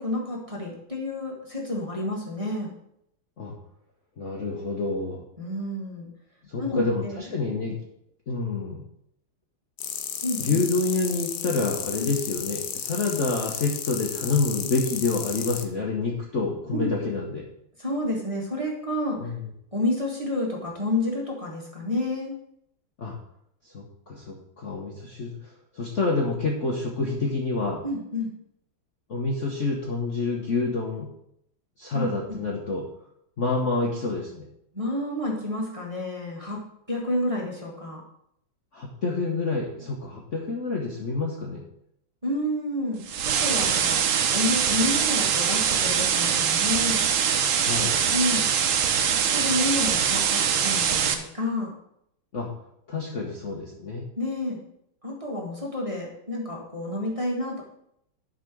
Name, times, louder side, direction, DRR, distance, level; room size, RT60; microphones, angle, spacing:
voice 1, 0.0-2.7 5.4-6.1 6.6-7.2 7.5-7.6 10.2-10.6 12.0-12.1 16.7-16.9 17.8-19.3 19.7-22.3 27.8-28.3 31.9-32.4 34.7-36.6 36.9-38.0 42.2-44.0 44.3-47.0 48.1-48.4 49.3-51.7 54.2-54.6 55.0-57.6, left 1 dB, 15° right, -3 dB, 1.7 m, -29 dB
voice 2, 4.2-5.2 6.5-7.8 8.3-8.8 10.4-17.4 19.2-19.5 23.0-23.1 23.6-27.8 29.1-31.1 31.8-32.9 33.4-34.5 38.7-41.7 47.6-48.0 52.3-52.5 52.9-54.0, left 3 dB, 45° left, -2 dB, 1.2 m, -28 dB
sound 1, 9.8-15.6, left 8 dB, 65° left, 1.1 m, -33 dB
sound 2, 43.1-51.1, right 8 dB, 75° right, 1.6 m, -23 dB
11.5 x 4.1 x 6.2 m, 0.75 s
omnidirectional pair, 2.4 m